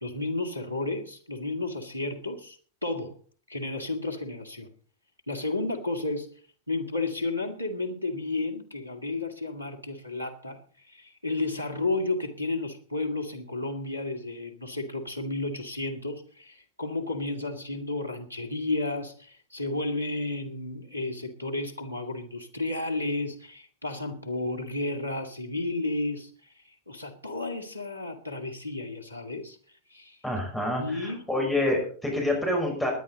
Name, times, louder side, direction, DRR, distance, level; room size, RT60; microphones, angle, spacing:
voice 1, 0.0-3.2 3.5-4.7 5.3-6.3 6.7-26.3 26.9-29.6 29.9-30.2 30.7-31.2, left 2 dB, 90° right, 7 dB, 2.1 m, -32 dB
voice 2, 30.2-32.9, left 1 dB, 5° left, 0 dB, 5.7 m, -27 dB
20.0 x 10.5 x 4.0 m, 0.44 s
figure-of-eight pair, 90°, 0 cm